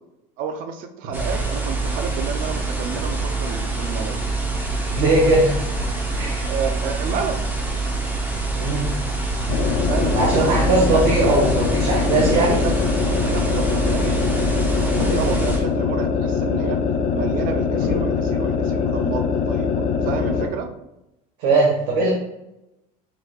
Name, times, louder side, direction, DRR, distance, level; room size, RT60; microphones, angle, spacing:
voice 1, 0.4-4.2 6.5-7.5 9.9-10.5 10.9-11.0 12.2-12.8 13.2-14.5 14.8-16.8 17.1-20.7, right 6 dB, 45° right, 7 dB, 0.5 m, -30 dB
sound 1, 1.1-15.6, right 3 dB, 10° right, 0.7 m, -25 dB
voice 2, 4.9-5.7 6.1-6.5 8.5-8.9 10.1-12.6 21.4-22.1, right 2 dB, 75° right, -4 dB, 1.3 m, -20 dB
sound 2, 9.5-20.5, left 6 dB, 45° left, 0.5 m, -22 dB
5.8 x 3.5 x 2.3 m, 0.90 s
cardioid pair, 150°, 19 cm